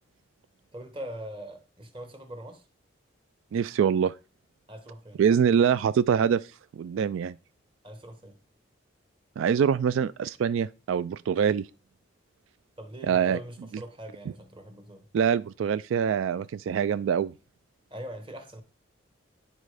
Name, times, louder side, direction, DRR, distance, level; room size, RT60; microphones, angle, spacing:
voice 1, 0.7-2.6 4.7-5.2 7.8-8.4 12.8-15.0 17.9-18.6, right 1 dB, 25° right, 1.2 m, -42 dB
voice 2, 3.5-4.1 5.2-7.4 9.4-11.7 13.1-13.4 15.1-17.3, right 7 dB, 80° right, 0.3 m, -24 dB
10.0 x 4.2 x 4.9 m
head